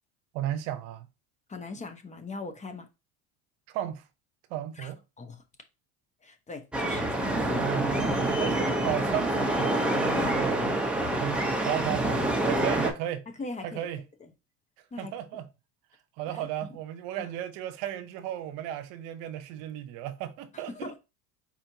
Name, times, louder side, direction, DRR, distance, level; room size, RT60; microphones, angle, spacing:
voice 1, 0.3-1.1 3.7-4.0 4.5-5.0 7.5-13.3 13.6-14.0 15.0-15.5 16.2-20.9, right 12 dB, 70° right, 0.8 m, -34 dB
voice 2, 1.5-2.9 4.8-5.4 6.2-7.5 10.1-10.4 13.4-13.9 14.9-15.1 17.2-17.3 20.7-21.0, left 3 dB, 20° left, 0.9 m, -39 dB
sound 1, 6.7-12.9, right 1 dB, 5° right, 1.0 m, -27 dB
4.3 x 4.2 x 2.8 m
supercardioid pair, 105°, 34 cm